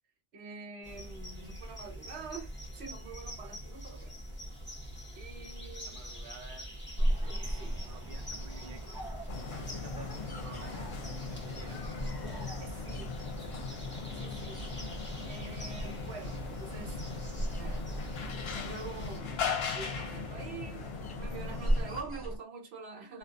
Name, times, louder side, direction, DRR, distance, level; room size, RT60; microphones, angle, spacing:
voice 1, 0.3-4.2 5.2-6.0 7.2-7.8 12.6-13.1 14.2-14.6 15.2-17.0 17.6-17.9 18.7-19.4 19.7-20.9 21.2-23.2, right 4 dB, 75° right, 1.0 m, -45 dB
sound 1, 0.8-19.2, equal, 10° left, 0.9 m, -45 dB
voice 2, 5.2-6.7 7.2-8.9 9.5-11.9, right 4 dB, 60° right, 0.7 m, -52 dB
sound 2, 7.0-22.4, right 1 dB, 30° left, 0.4 m, -38 dB
sound 3, 9.3-22.0, left 5 dB, 70° left, 0.8 m, -39 dB
2.4 x 2.3 x 2.4 m
omnidirectional pair, 1.1 m